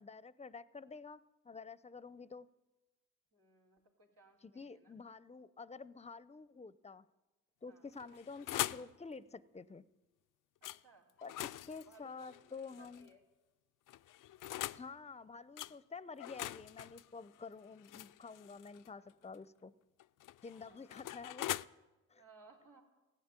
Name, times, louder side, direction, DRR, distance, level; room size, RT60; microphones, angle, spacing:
voice 1, 0.0-2.5 4.4-7.0 7.6-9.8 11.2-13.1 14.8-19.7 20.4-21.6 22.1-22.2, left 4 dB, 20° left, 0.6 m, -49 dB
voice 2, 3.3-5.0 7.7-7.9 10.6-11.6 11.9-13.2 20.5-20.9 22.1-22.8, right 4 dB, 75° right, 3.2 m, -63 dB
sound 1, 7.9-8.9 10.6-10.8 11.2-13.1 13.9-14.9 15.6-15.7 16.2-18.9 20.0-21.6, left 14 dB, 70° left, 0.5 m, -43 dB
15.5 x 10.0 x 8.9 m
supercardioid pair, 45°, 33 cm